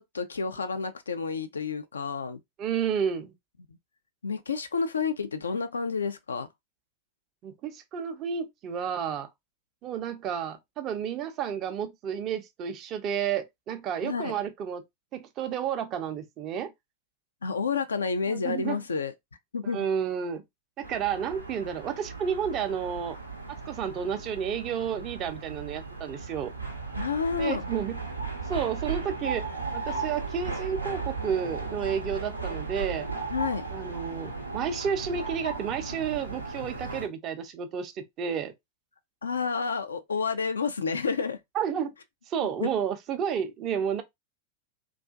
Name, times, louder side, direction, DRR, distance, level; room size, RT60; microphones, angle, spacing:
voice 1, 0.0-2.4 4.2-6.5 14.0-14.4 17.4-19.1 19.5-19.9 27.0-27.7 33.3-33.6 39.2-41.4 42.6-42.7, left 5 dB, 70° left, 0.3 m, -30 dB
voice 2, 2.6-3.3 7.4-9.3 9.8-14.8 15.1-16.7 18.3-18.8 19.6-20.4 20.8-23.2 23.5-26.5 27.4-28.0 28.5-29.5 29.7-33.1 33.7-38.5 41.5-41.9 42.3-44.0, right 8 dB, 35° right, 0.5 m, -31 dB
sound 1, 20.8-37.1, right 4 dB, 85° right, 0.6 m, -36 dB
2.4 x 2.3 x 2.3 m
figure-of-eight pair, 90°, 0 cm